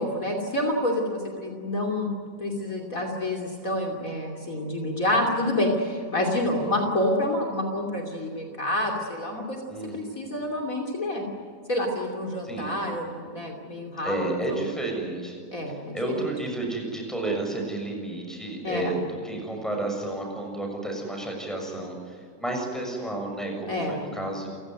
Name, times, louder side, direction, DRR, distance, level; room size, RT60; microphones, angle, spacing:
voice 1, 0.0-2.1 2.4-9.6 9.9-11.2 11.7-14.2 14.5-14.6 15.5-16.0 18.6-18.9 23.7-24.0, left 1 dB, 50° left, 1 dB, 3.2 m, -28 dB
voice 2, 9.7-10.2 12.4-12.8 14.0-15.4 15.7-24.5, right 2 dB, ahead, 1 dB, 6.7 m, -31 dB
29.5 x 17.0 x 9.3 m, 2.3 s
omnidirectional pair, 1.8 m